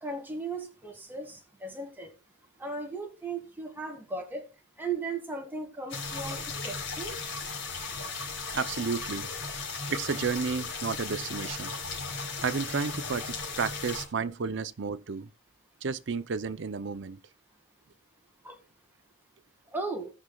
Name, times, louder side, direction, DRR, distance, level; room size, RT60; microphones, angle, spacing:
voice 1, 0.0-2.1 2.6-4.4 4.8-7.1 18.4-18.6 19.7-20.1, right 3 dB, 10° right, 1.9 m, -36 dB
sound 1, 5.9-14.0, left 4 dB, 65° left, 4.1 m, -36 dB
voice 2, 8.5-9.3 9.9-11.8 12.4-15.3 15.8-17.2, right 5 dB, 65° right, 0.6 m, -32 dB
19.0 x 6.3 x 2.3 m
head